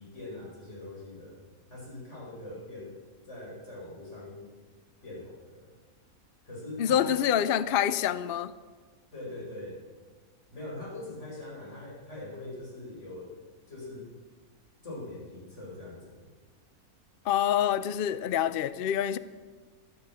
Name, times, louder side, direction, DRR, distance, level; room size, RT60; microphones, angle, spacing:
voice 1, 0.0-1.4 1.7-2.9 3.3-4.5 5.0-5.7 6.5-7.2 9.1-9.8 10.5-13.3 13.7-14.1 14.8-16.3, left 2 dB, 50° left, -3 dB, 5.2 m, -42 dB
voice 2, 6.8-8.5 17.2-19.2, left 10 dB, 70° left, 15 dB, 0.5 m, -26 dB
13.0 x 12.0 x 7.3 m, 1.4 s
omnidirectional pair, 1.5 m